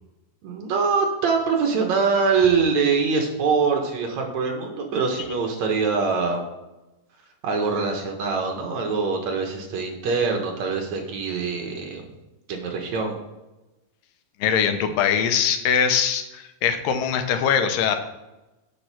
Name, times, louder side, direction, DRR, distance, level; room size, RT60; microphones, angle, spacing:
voice 1, 0.4-6.4 7.4-12.0 12.5-13.2, right 5 dB, 65° right, 2 dB, 2.2 m, -23 dB
voice 2, 14.4-18.0, left 7 dB, 85° left, 8 dB, 2.5 m, -22 dB
7.8 x 5.8 x 5.7 m, 1.0 s
omnidirectional pair, 3.8 m